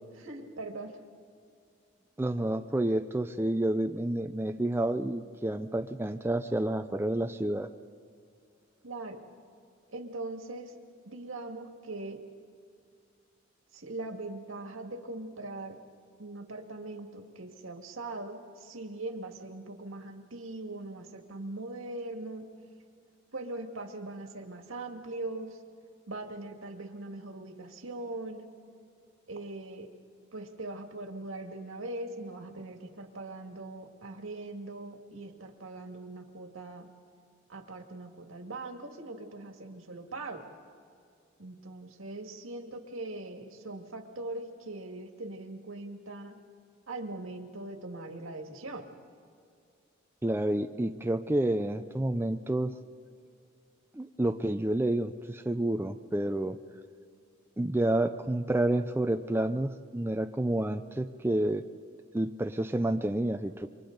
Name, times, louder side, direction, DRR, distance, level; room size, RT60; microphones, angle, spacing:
voice 1, 0.2-1.0 8.8-9.2 9.9-10.7 11.1-12.2 13.7-15.8 16.2-22.5 23.3-25.6 26.1-28.5 29.3-29.9 30.3-36.9 37.5-40.5 41.4-46.4 46.9-48.9, right 2 dB, 75° right, 4 dB, 1.9 m, -41 dB
voice 2, 2.2-7.7 50.2-52.7 53.9-56.6 57.6-61.6 62.1-63.7, right 1 dB, 10° right, 7 dB, 0.5 m, -29 dB
28.5 x 24.0 x 3.9 m, 2.4 s
head